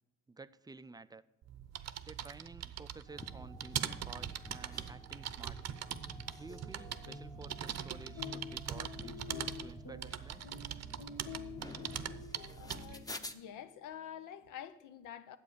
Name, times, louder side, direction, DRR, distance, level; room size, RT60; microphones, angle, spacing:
voice 1, 0.3-1.2 2.0-5.6 6.4-10.6, right 3 dB, 15° right, 0.4 m, -52 dB
sound 1, 1.4-13.0, right 10 dB, 60° right, 0.7 m, -42 dB
sound 2, 3.1-13.3, left 2 dB, 10° left, 0.8 m, -52 dB
sound 3, 5.8-13.4, left 5 dB, 65° left, 1.4 m, -49 dB
voice 2, 12.6-15.4, left 9 dB, 85° left, 0.8 m, -48 dB
9.7 x 7.8 x 6.8 m
cardioid pair, 90°, 30 cm